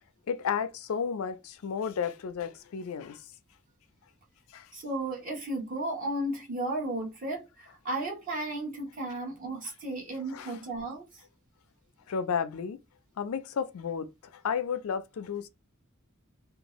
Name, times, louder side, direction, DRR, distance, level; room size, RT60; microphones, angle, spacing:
voice 1, 0.3-3.2 4.5-4.7 10.3-10.6 12.1-12.8 13.2-14.1 14.3-15.5, left 6 dB, 90° left, 0.4 m, -32 dB
voice 2, 4.7-11.0, right 1 dB, 40° right, 0.9 m, -34 dB
2.6 x 2.3 x 3.0 m
head